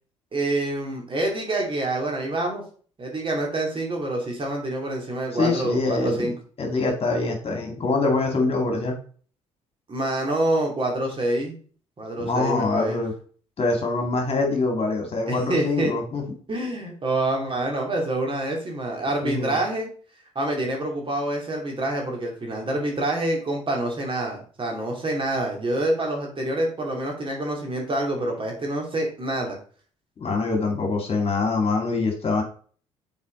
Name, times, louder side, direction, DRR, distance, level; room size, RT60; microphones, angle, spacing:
voice 1, 0.3-2.6 3.0-6.3 9.9-11.5 12.0-13.0 15.3-15.9 16.5-19.9 20.3-29.6, right 1 dB, 35° right, 1 dB, 2.7 m, -26 dB
voice 2, 5.3-6.3 6.6-8.9 12.2-13.1 13.6-16.4 19.2-19.6 30.2-32.4, left 3 dB, 40° left, 2 dB, 2.2 m, -24 dB
7.2 x 4.6 x 3.8 m, 0.43 s
hypercardioid pair, 50°, 16 cm